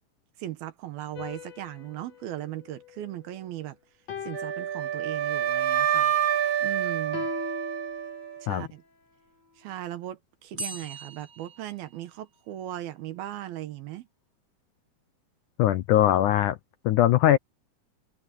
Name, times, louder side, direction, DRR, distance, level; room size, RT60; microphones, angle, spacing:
voice 1, 0.4-3.8 4.2-6.2 6.6-7.3 8.4-8.8 9.6-14.1, right 13 dB, 75° right, 3.0 m, -38 dB
sound 1, 1.1-3.5 4.1-5.6 7.1-8.6, left 5 dB, 45° left, 3.2 m, -41 dB
Wind instrument woodwind instrument, 4.3-8.4, right 10 dB, 55° right, 2.0 m, -27 dB
sound 2, 10.6-12.5, right 2 dB, 20° right, 1.2 m, -40 dB
voice 2, 15.6-16.6 16.9-17.4, left 13 dB, 75° left, 1.9 m, -21 dB
omnidirectional pair, 4.4 m